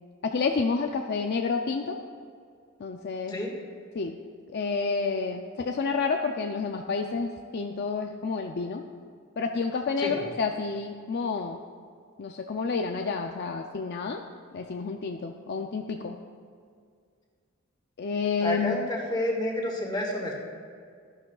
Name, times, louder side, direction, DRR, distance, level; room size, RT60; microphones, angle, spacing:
voice 1, 0.2-2.0 2.8-3.4 3.9-4.2 4.5-8.8 9.4-11.6 12.2-14.2 14.5-16.2 18.0-18.8, left 4 dB, 55° left, 3 dB, 0.5 m, -29 dB
voice 2, 18.4-20.5, left 1 dB, 20° left, -1 dB, 1.7 m, -30 dB
13.0 x 11.5 x 2.3 m, 2.2 s
head